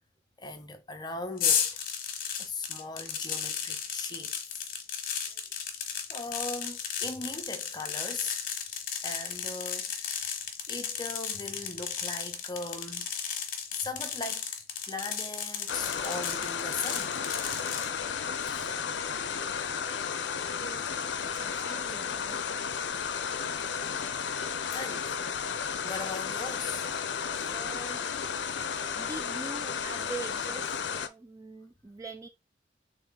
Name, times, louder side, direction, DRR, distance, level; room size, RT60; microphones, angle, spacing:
voice 1, 0.4-1.9 2.4-4.6 6.1-8.4 9.0-10.3 10.7-13.1 13.7-14.5 14.9-17.2 18.4-18.8 24.7-25.2 25.8-27.0 27.3-27.6, left 3 dB, 20° left, 0.7 m, -39 dB
sound 1, 1.4-17.9, left 7 dB, 50° left, 0.9 m, -34 dB
voice 2, 5.2-5.5 20.6-20.9 21.2-22.6 27.5-28.0 28.5-28.6 29.0-32.3, right 3 dB, 15° right, 0.4 m, -44 dB
sound 2, 15.7-31.1, left 6 dB, 65° left, 0.5 m, -33 dB
3.5 x 3.5 x 3.8 m
head